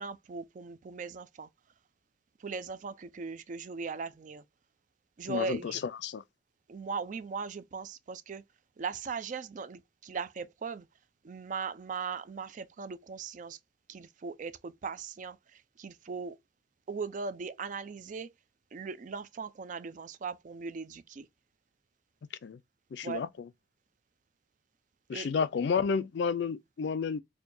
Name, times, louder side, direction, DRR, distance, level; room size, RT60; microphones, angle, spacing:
voice 1, 0.0-1.5 2.4-4.4 5.2-5.8 6.7-8.4 8.8-10.9 11.2-13.6 13.9-16.4 16.9-18.3 18.7-21.3 23.0-23.2 25.1-25.5, right 5 dB, 40° right, 0.3 m, -39 dB
voice 2, 5.3-6.2 22.4-22.6 22.9-23.5 25.1-27.2, left 5 dB, 65° left, 0.3 m, -31 dB
4.3 x 2.2 x 2.5 m
head